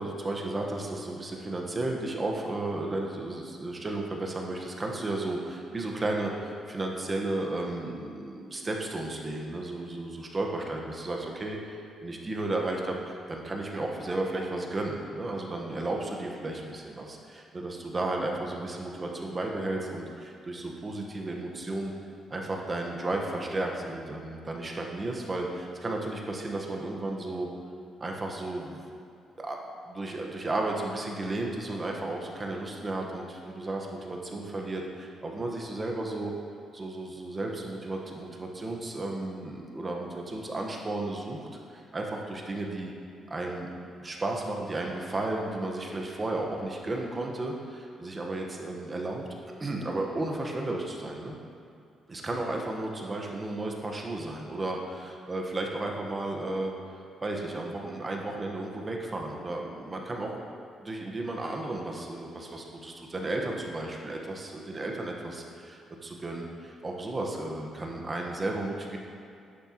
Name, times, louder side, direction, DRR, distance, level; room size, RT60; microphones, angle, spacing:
voice 1, 0.0-21.9 22.3-27.5 28.0-28.8 29.4-29.6 29.9-36.3 36.7-42.9 43.3-43.7 44.0-49.2 49.6-51.4 52.1-60.4 60.8-69.0, right 2 dB, 30° right, 0 dB, 1.2 m, -33 dB
11.0 x 6.9 x 3.0 m, 2.5 s
cardioid pair, 90°, 0 cm